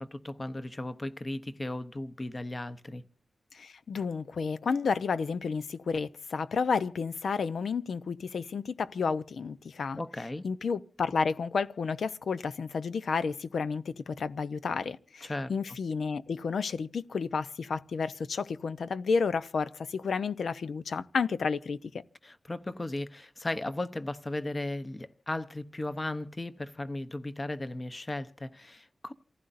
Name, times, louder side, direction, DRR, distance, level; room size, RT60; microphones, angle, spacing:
voice 1, 0.0-3.0 10.0-10.5 15.2-15.5 22.2-29.1, left 2 dB, 25° left, 0.8 m, -36 dB
voice 2, 3.5-10.0 10.4-22.0, left 5 dB, 85° left, 0.7 m, -31 dB
28.5 x 15.5 x 2.6 m
wide cardioid pair, 165°, 0 cm